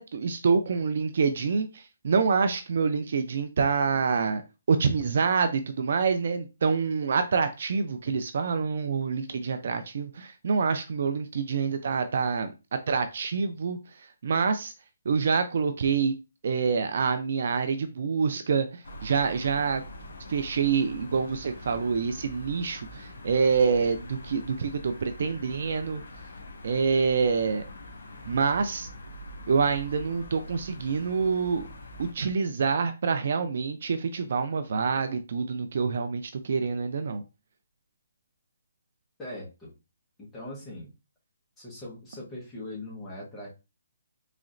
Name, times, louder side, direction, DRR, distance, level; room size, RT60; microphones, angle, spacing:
voice 1, 0.0-4.4 4.7-12.5 12.9-13.8 14.2-14.7 15.1-16.1 16.4-19.8 20.3-26.0 26.6-27.6 28.3-28.9 29.5-31.7 32.0-37.2, right 5 dB, 45° right, 0.4 m, -26 dB
Moderate Traffic, 18.8-32.1, left 1 dB, 85° left, 1.5 m, -44 dB
voice 2, 39.2-39.7 40.2-40.9 41.6-43.6, left 1 dB, 5° left, 1.1 m, -40 dB
4.1 x 2.9 x 2.5 m
hypercardioid pair, 175°, 0 cm